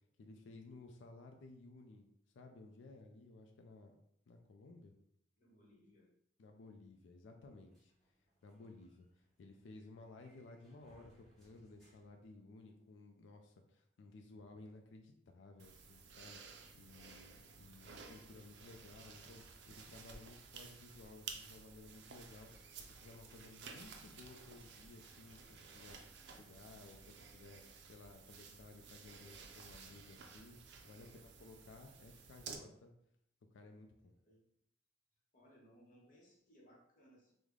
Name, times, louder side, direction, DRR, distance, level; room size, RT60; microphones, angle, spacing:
voice 1, 0.2-2.1 2.3-3.9 4.3-4.9 6.4-7.9 8.4-16.4 16.7-22.5 22.8-30.6 30.8-32.9 33.5-34.2, left 2 dB, 75° left, 4 dB, 0.4 m, -57 dB
voice 2, 5.4-6.1 31.0-31.2 34.2-34.4 35.3-37.3, equal, 45° left, -3 dB, 0.9 m, -65 dB
sound 1, 7.7-13.0, equal, 5° left, 1.1 m, -71 dB
sound 2, 15.6-32.6, right 5 dB, 65° right, 0.4 m, -54 dB
3.2 x 2.1 x 3.6 m, 0.73 s
head